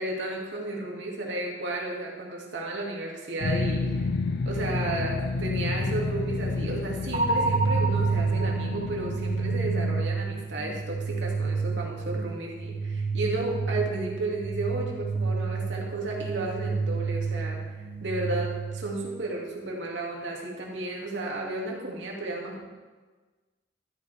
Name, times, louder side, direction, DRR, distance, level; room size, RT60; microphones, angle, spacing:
voice 1, 0.0-4.1 4.4-17.6 18.0-22.6, right 2 dB, 85° right, -2 dB, 2.7 m, -33 dB
sound 1, 3.4-10.0, left 3 dB, 60° left, 0.5 m, -30 dB
sound 2, 7.1-19.1, right 4 dB, 50° right, 2.2 m, -29 dB
13.5 x 13.0 x 3.6 m, 1.3 s
head